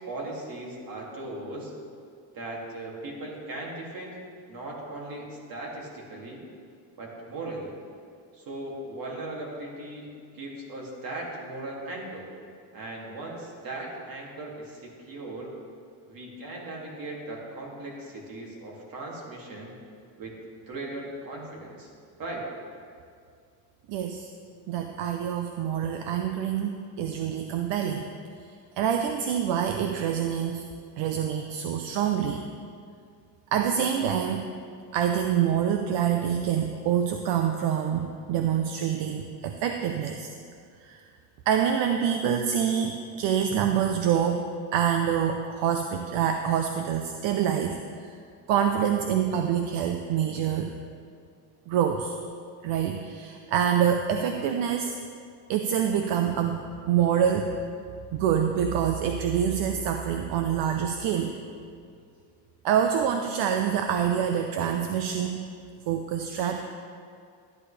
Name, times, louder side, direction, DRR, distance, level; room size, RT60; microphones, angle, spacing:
voice 1, 0.1-1.7 2.3-4.2 4.5-6.4 7.0-7.7 8.3-10.1 10.3-12.2 12.7-15.5 16.1-19.8 20.2-21.9 22.2-22.5, right 2 dB, 50° right, -2 dB, 2.7 m, -38 dB
voice 2, 23.9-24.3 24.7-28.1 28.8-30.6 31.0-32.4 33.5-34.5 34.9-40.3 40.8-41.0 41.5-48.2 48.5-50.8 51.7-52.1 52.6-55.0 55.5-57.5 58.1-61.4 62.6-65.4 65.9-66.6, right 8 dB, 75° right, 5 dB, 0.8 m, -26 dB
13.0 x 11.0 x 3.4 m, 2.3 s
cardioid pair, 135°, 44 cm